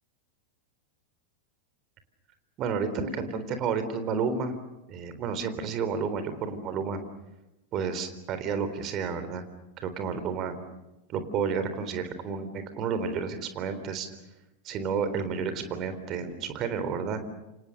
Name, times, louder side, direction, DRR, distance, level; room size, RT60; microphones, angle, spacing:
voice 1, 2.6-4.5 4.9-7.0 7.7-9.5 9.8-10.6 11.1-14.1 14.6-17.2, right 5 dB, 35° right, 10 dB, 3.8 m, -31 dB
29.0 x 26.5 x 6.6 m, 0.98 s
figure-of-eight pair, 90°, 0 cm